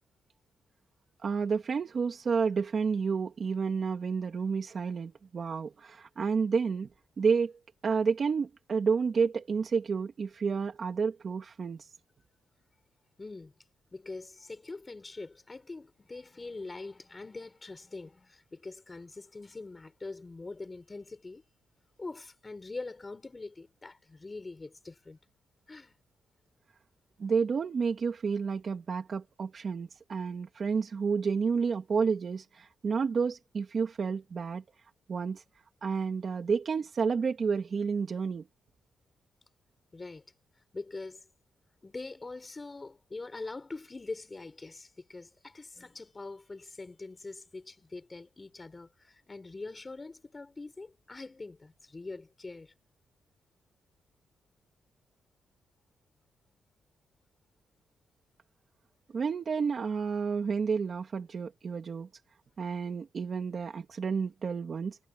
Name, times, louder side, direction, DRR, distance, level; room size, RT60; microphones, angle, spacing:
voice 1, 1.2-6.9 7.2-7.5 7.8-11.8 27.2-34.6 35.1-35.4 35.8-38.4 59.1-62.1 62.6-65.0, right 5 dB, 40° right, 2.9 m, -30 dB
voice 2, 13.2-13.5 13.9-21.4 22.0-25.2 25.7-25.9 39.9-40.2 40.7-41.2 41.8-52.7, left 3 dB, 20° left, 5.7 m, -43 dB
cardioid pair, 145°, 0 cm